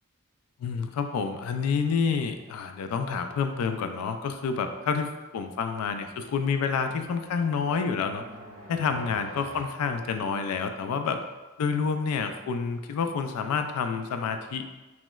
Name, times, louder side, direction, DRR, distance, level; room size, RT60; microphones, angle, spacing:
voice 1, 0.6-8.2 8.7-11.2 11.6-14.6, left 5 dB, 90° left, 7 dB, 0.3 m, -28 dB
sound 1, 5.9-10.8, equal, 65° right, 0.6 m, -49 dB
3.0 x 3.0 x 2.3 m, 1.2 s
head